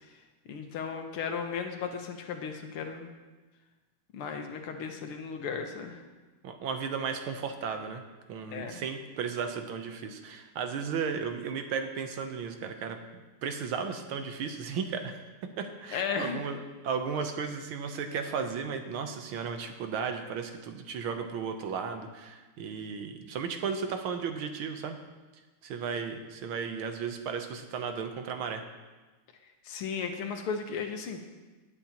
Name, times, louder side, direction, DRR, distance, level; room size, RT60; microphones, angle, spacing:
voice 1, 0.5-3.1 4.1-6.0 8.5-8.8 15.9-16.4 29.6-31.2, left 6 dB, 85° left, 4 dB, 1.9 m, -35 dB
voice 2, 6.4-8.0 8.3-15.2 15.6-16.6 16.8-25.0 25.6-28.6, right 6 dB, 75° right, 6 dB, 1.7 m, -35 dB
18.0 x 8.6 x 2.9 m, 1.2 s
omnidirectional pair, 2.4 m